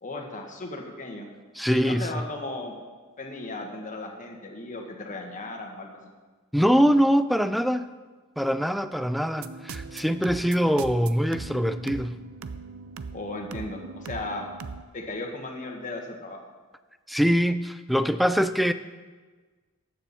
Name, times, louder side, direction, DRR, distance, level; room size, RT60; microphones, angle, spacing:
voice 1, 0.0-1.3 1.7-2.7 3.2-6.1 13.1-14.5 14.9-16.4, left 2 dB, 40° left, 1 dB, 1.7 m, -36 dB
voice 2, 1.6-2.2 6.5-7.9 8.4-12.2 17.1-18.7, equal, ahead, 12 dB, 0.4 m, -23 dB
sound 1, 9.4-14.8, right 4 dB, 80° right, 0.6 m, -40 dB
14.0 x 9.5 x 4.3 m, 1.4 s
head